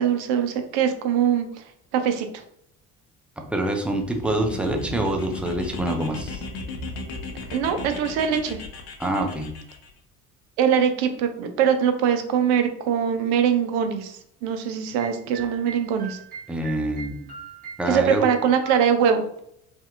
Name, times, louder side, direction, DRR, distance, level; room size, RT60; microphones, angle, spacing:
voice 1, 0.0-1.5 1.9-2.3 7.5-8.6 10.6-16.2 17.9-19.3, right 8 dB, 55° right, 7 dB, 0.6 m, -22 dB
voice 2, 3.4-6.4 9.0-9.5 16.5-17.3 17.8-18.3, right 1 dB, 5° right, 2 dB, 0.3 m, -26 dB
sound 1, 4.0-9.9, left 2 dB, 55° left, 0.7 m, -36 dB
sound 2, 15.0-18.8, right 6 dB, 20° right, 0.8 m, -41 dB
3.2 x 2.7 x 2.4 m, 0.73 s
figure-of-eight pair, 60°, 41 cm